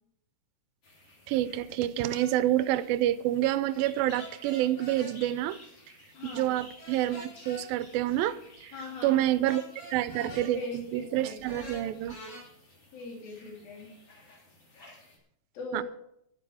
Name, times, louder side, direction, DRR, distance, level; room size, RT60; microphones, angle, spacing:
sound 1, 0.8-15.2, left 2 dB, 40° left, 3.8 m, -55 dB
voice 1, 1.3-5.6 6.3-8.7 9.0-9.6 9.9-12.2 15.7-15.8, right 13 dB, 90° right, 2.4 m, -28 dB
sound 2, 2.1-2.3 4.1-5.2 6.8-7.6 9.5-10.5 11.4-12.4, left 1 dB, 60° left, 5.6 m, -45 dB
voice 2, 6.1-6.6 8.7-9.2 10.2-11.5 12.9-13.9 15.5-15.8, left 3 dB, 85° left, 4.5 m, -40 dB
12.0 x 11.5 x 4.9 m
omnidirectional pair, 4.1 m